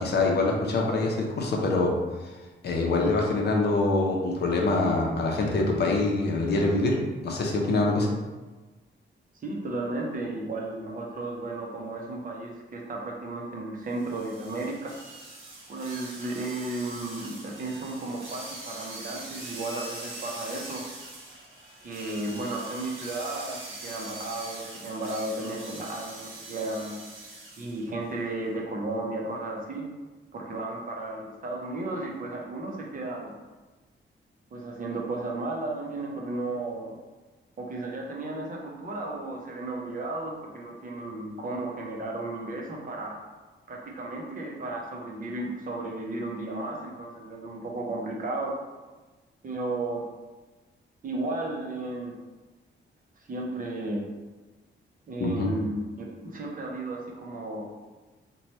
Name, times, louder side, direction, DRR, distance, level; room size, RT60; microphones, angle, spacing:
voice 1, 0.0-1.9 2.6-6.9 7.2-8.2 55.2-55.5, left 2 dB, 55° left, 0 dB, 0.6 m, -24 dB
voice 2, 9.4-14.9 15.7-20.8 21.8-27.0 27.6-29.9 30.3-33.3 34.5-37.0 37.6-43.2 43.7-48.5 49.4-50.0 51.0-52.2 53.2-54.1 55.1-55.8 56.2-57.7, right 2 dB, 45° right, -1 dB, 0.6 m, -34 dB
sound 1, 13.9-27.8, right 2 dB, 80° right, 0.9 m, -43 dB
2.9 x 2.2 x 4.1 m, 1.2 s
wide cardioid pair, 165°, 20 cm